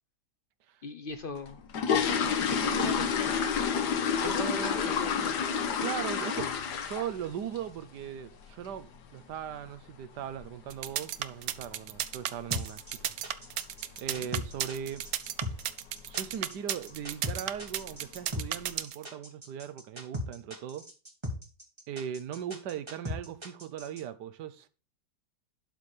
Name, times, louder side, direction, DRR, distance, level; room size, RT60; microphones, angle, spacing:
voice 1, 0.8-1.6 2.6-3.5 4.1-5.3 14.2-14.3, left 5 dB, 55° left, 0.6 m, -40 dB
sound 1, 1.4-7.3 7.6-7.8 8.2-8.3 8.6-8.8 9.2-9.4 9.7-9.8 10.3-10.4 10.7-10.9 11.4-11.7 12.0-12.1 12.5-12.7 13.0-13.1 13.5-13.6 14.2-14.5 14.9-15.2 15.5-15.6 16.1-16.2 16.9-17.1 17.5-18.0 18.4-18.5, left 6 dB, 85° left, 1.5 m, -29 dB
voice 2, 2.5-3.1 4.2-5.3 5.8-6.5 6.8-13.1 14.0-15.0 16.1-20.8 21.9-24.7, right 9 dB, 90° right, 1.4 m, -39 dB
sound 2, 10.7-19.0, right 12 dB, 70° right, 1.0 m, -33 dB
sound 3, 12.5-24.0, left 1 dB, 15° right, 1.9 m, -38 dB
12.0 x 4.3 x 4.9 m
omnidirectional pair, 1.7 m